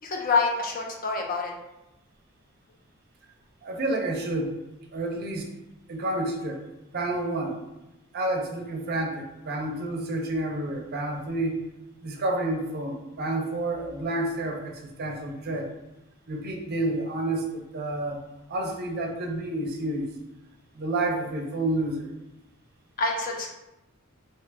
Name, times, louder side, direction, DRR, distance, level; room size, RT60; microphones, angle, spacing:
voice 1, 0.0-1.5 23.0-23.5, left 3 dB, 40° left, 0 dB, 0.4 m, -26 dB
voice 2, 3.6-4.5 4.9-5.5 5.9-6.6 6.9-7.6 8.1-11.6 12.0-15.7 16.3-18.2 18.5-20.1 20.7-22.1, right 2 dB, 45° right, 2 dB, 0.5 m, -29 dB
2.7 x 2.3 x 3.3 m, 0.95 s
head